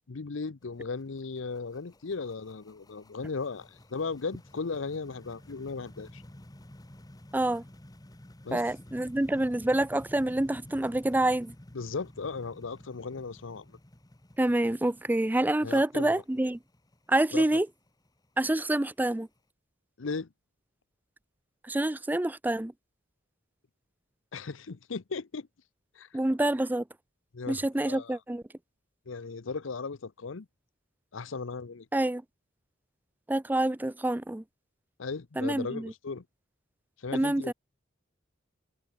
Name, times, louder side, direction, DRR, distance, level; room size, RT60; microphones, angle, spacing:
voice 1, 0.1-6.2 8.4-8.6 11.7-13.8 15.6-16.2 17.3-17.4 20.0-20.3 24.3-25.5 25.9-26.1 27.3-28.2 29.1-30.5 31.1-31.9 35.0-36.2 37.0-37.5, left 4 dB, 75° left, 0.7 m, -36 dB
sound 1, 0.6-19.4, left 1 dB, 20° left, 1.1 m, -52 dB
voice 2, 7.3-7.6 8.5-11.5 14.4-16.6 17.1-17.7 18.4-19.3 21.7-22.7 26.1-26.8 27.5-28.4 31.9-32.2 33.3-34.4 35.4-35.9 37.1-37.5, right 1 dB, 10° right, 0.4 m, -27 dB
head